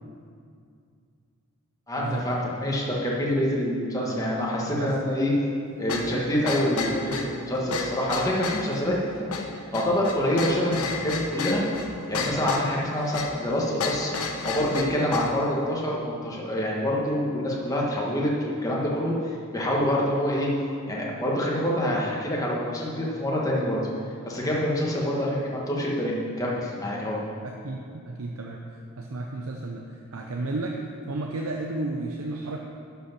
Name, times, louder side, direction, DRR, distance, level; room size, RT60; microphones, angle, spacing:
voice 1, 1.9-5.3 5.8-11.6 12.1-19.1 19.5-20.5 20.9-23.8 24.2-27.2, left 1 dB, 15° left, -4 dB, 1.4 m, -26 dB
voice 2, 4.1-4.9 27.4-28.6 29.0-30.8 31.1-32.6, right 2 dB, 80° right, 1 dB, 0.7 m, -33 dB
sound 1, 5.9-15.4, left 4 dB, 90° left, 0.9 m, -32 dB
11.5 x 5.8 x 5.9 m, 2.4 s
head